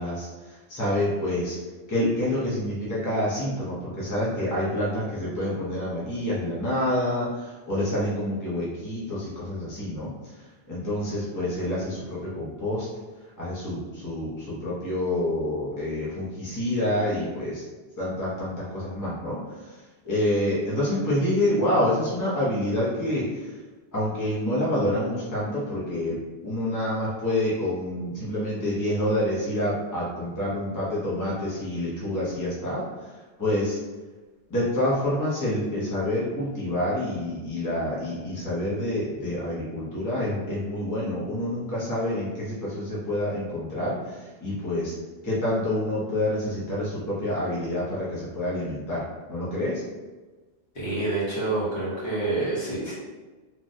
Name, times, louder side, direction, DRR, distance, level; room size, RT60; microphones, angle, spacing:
voice 1, 0.0-1.6 1.9-12.9 13.4-17.6 18.0-23.6 23.9-26.2 26.4-33.8 34.5-44.9 45.2-49.8, left 1 dB, 20° left, -7 dB, 0.7 m, -27 dB
voice 2, 50.7-52.9, right 2 dB, 60° left, -8 dB, 1.4 m, -27 dB
3.2 x 2.2 x 2.6 m, 1.2 s
omnidirectional pair, 1.2 m